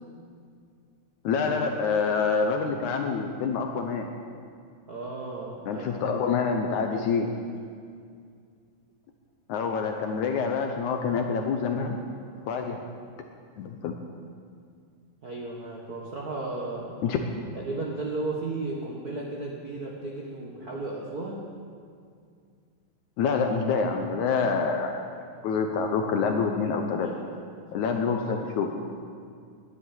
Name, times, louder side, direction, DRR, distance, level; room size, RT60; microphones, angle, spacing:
voice 1, 1.2-4.1 5.7-7.3 9.5-12.0 12.5-12.8 13.6-14.0 17.0-17.2 23.2-25.0 25.4-27.1 27.7-28.7, left 5 dB, 75° left, 4 dB, 1.9 m, -26 dB
voice 2, 4.9-6.0 6.9-7.0 15.2-17.0 17.5-21.5 27.0-27.2, right 2 dB, 80° right, -2 dB, 0.8 m, -34 dB
10.5 x 10.5 x 9.7 m, 2.2 s
omnidirectional pair, 4.2 m